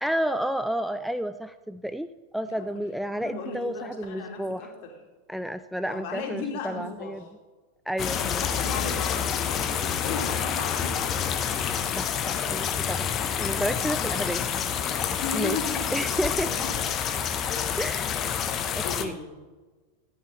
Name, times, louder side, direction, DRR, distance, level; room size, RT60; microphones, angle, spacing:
voice 1, 0.0-4.7 5.3-7.2 7.9-8.4 12.0-13.1 13.4-14.4 15.3-15.6 15.9-16.5 17.8-18.3 18.7-19.2, equal, ahead, 11 dB, 0.3 m, -31 dB
voice 2, 2.5-2.8 3.1-5.0 5.9-7.1 8.1-11.2 15.2-16.1 17.9-18.3 18.8-19.3, left 4 dB, 45° left, 1 dB, 2.7 m, -36 dB
sound 1, 8.0-19.1, left 8 dB, 30° left, 0.9 m, -28 dB
14.5 x 10.0 x 4.2 m, 1.3 s
figure-of-eight pair, 90°, 0 cm